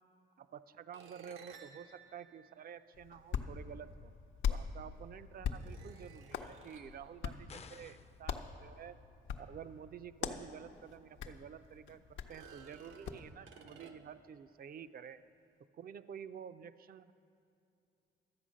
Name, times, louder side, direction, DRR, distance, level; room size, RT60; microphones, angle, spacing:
voice 1, 0.4-4.1 4.5-9.0 9.4-15.2 15.7-17.1, right 8 dB, 50° right, 13 dB, 0.5 m, -50 dB
sound 1, 0.9-3.4 4.6-4.7 5.5-7.0 10.3-10.4 10.9-11.0 12.2-14.3, right 6 dB, 80° right, 0.9 m, -57 dB
Hands, 2.9-13.3, left 7 dB, 75° left, 0.7 m, -43 dB
sound 2, 7.5-8.2, left 6 dB, 30° left, 0.5 m, -53 dB
12.0 x 8.2 x 6.3 m, 2.7 s
cardioid pair, 90°, 20 cm